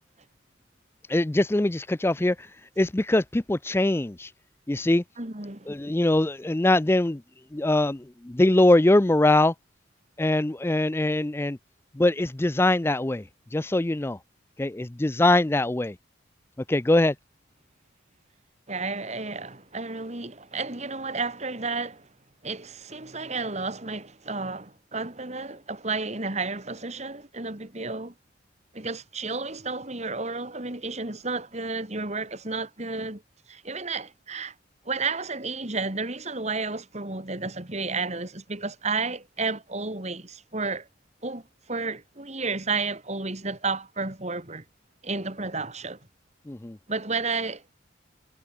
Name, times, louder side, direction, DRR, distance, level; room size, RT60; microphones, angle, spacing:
voice 1, 1.1-2.5 2.8-4.3 4.7-5.0 5.7-7.2 7.5-9.5 10.2-11.6 12.0-13.2 13.5-14.2 14.6-16.0 16.7-17.1 46.5-46.8, left 1 dB, 15° left, 0.4 m, -22 dB
voice 2, 5.2-5.7 18.7-22.1 22.4-28.1 28.7-33.2 33.5-34.5 34.8-40.9 41.2-41.4 41.7-44.6 45.0-46.0 46.9-47.8, right 3 dB, 35° right, 2.7 m, -32 dB
head